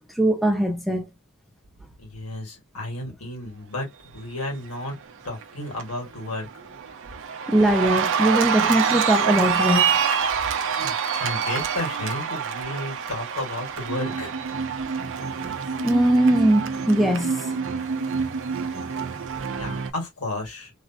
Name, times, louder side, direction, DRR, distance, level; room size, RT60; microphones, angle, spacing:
voice 1, 0.2-1.1 7.5-10.0 15.8-17.6, right 1 dB, ahead, 0.5 m, -21 dB
voice 2, 2.0-5.0 5.2-6.5 10.8-14.3 19.5-20.7, left 1 dB, 85° left, 1.7 m, -33 dB
Cheering, 5.0-5.4 5.8-19.9, right 6 dB, 60° right, 0.5 m, -26 dB
3.1 x 2.8 x 2.3 m
head